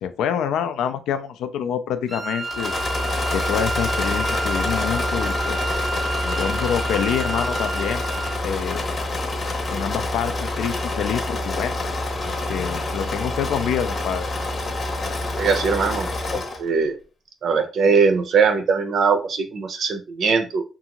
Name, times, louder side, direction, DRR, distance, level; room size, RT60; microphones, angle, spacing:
voice 1, 0.0-2.7 3.3-5.6 6.2-8.0 8.4-8.8 9.7-11.8 12.5-14.3, left 8 dB, 85° left, 10 dB, 0.3 m, -26 dB
Wind instrument woodwind instrument, 2.1-8.4, right 2 dB, 10° right, 0.4 m, -29 dB
Engine / Mechanisms, 2.4-16.7, left 2 dB, 40° left, 0.8 m, -27 dB
voice 2, 15.4-17.0 17.4-20.6, right 5 dB, 60° right, 7 dB, 0.5 m, -21 dB
2.6 x 2.4 x 2.8 m, 0.34 s
cardioid pair, 90°, 0 cm